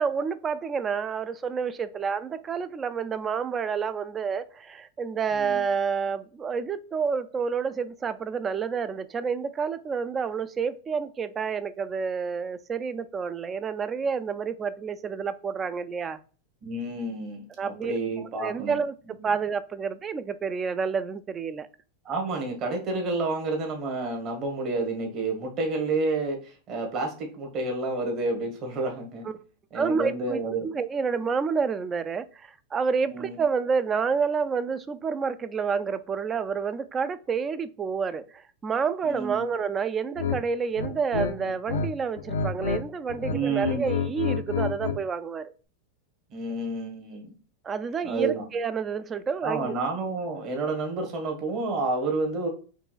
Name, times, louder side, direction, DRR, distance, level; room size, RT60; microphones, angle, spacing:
voice 1, 0.0-16.2 17.6-18.0 18.4-21.7 29.3-29.4 29.7-45.5 47.6-49.8, right 5 dB, 20° right, 0.4 m, -29 dB
voice 2, 16.6-18.7 22.0-29.3 29.7-30.7 33.1-33.4 39.1-39.4 43.3-43.9 46.3-47.3 48.0-48.4 49.4-52.5, right 3 dB, 40° right, 1.4 m, -30 dB
sound 1, 40.2-40.4 40.7-41.9 42.2-42.8 43.1-45.0, left 5 dB, 90° left, 0.5 m, -29 dB
4.6 x 3.0 x 2.4 m
hypercardioid pair, 125°, 0 cm